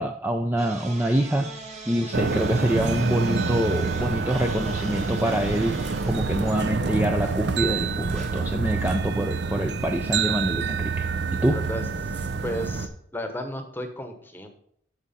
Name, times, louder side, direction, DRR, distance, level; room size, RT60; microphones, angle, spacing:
voice 1, 0.0-1.5 1.9-11.0 11.4-11.6, right 1 dB, 10° right, 4 dB, 0.4 m, -25 dB
sound 1, 0.6-12.0, right 2 dB, 35° right, 1.8 m, -43 dB
sound 2, 2.1-12.9, right 4 dB, 65° right, 0.6 m, -27 dB
voice 2, 11.5-14.5, equal, 10° left, 6 dB, 1.0 m, -34 dB
8.9 x 6.2 x 4.2 m, 0.67 s
head